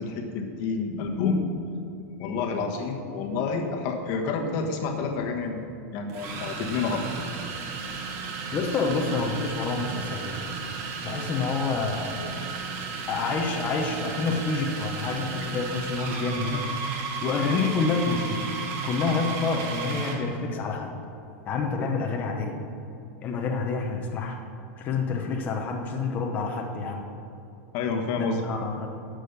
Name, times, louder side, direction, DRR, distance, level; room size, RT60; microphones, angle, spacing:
voice 1, 0.0-1.5 2.2-5.7 5.9-7.1 12.2-12.3 27.7-28.4, left 4 dB, 40° left, 3 dB, 1.3 m, -29 dB
sound 1, 4.9-5.0 6.1-20.3, right 5 dB, 35° right, 1.4 m, -34 dB
voice 2, 8.5-10.5 11.0-12.2 13.1-16.6 17.2-18.4 18.8-20.9 21.5-22.6 23.2-24.4 24.8-27.0 28.2-28.9, left 4 dB, 20° left, 1 dB, 0.9 m, -28 dB
12.0 x 6.4 x 6.7 m, 2.8 s
supercardioid pair, 175°, 8 cm